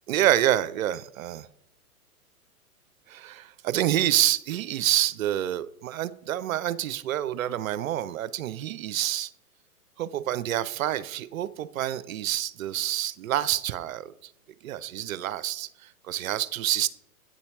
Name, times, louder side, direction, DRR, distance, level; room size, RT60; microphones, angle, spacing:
voice 1, 0.1-1.5 3.1-9.3 10.0-14.1 14.6-16.9, right 12 dB, 65° right, 0.5 m, -27 dB
8.6 x 4.1 x 2.9 m
hypercardioid pair, 120°, 45 cm